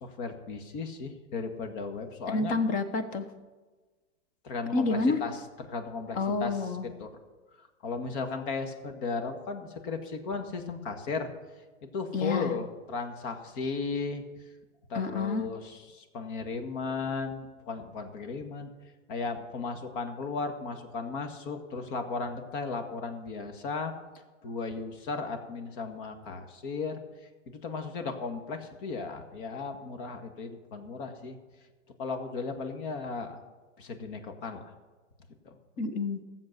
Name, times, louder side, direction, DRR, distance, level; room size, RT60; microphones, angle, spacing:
voice 1, 0.0-2.6 4.4-7.1 7.6-11.3 11.8-14.2 14.9-18.7 19.1-23.9 24.4-31.4 32.0-33.4 33.8-34.7 35.4-35.6, left 4 dB, 45° left, 6 dB, 1.8 m, -36 dB
voice 2, 2.3-3.2 4.7-5.2 6.2-6.9 12.1-12.5 14.9-15.4 35.8-36.2, left 3 dB, 20° left, 9 dB, 0.9 m, -28 dB
15.0 x 7.6 x 6.7 m, 1.3 s
hypercardioid pair, 155°, 37 cm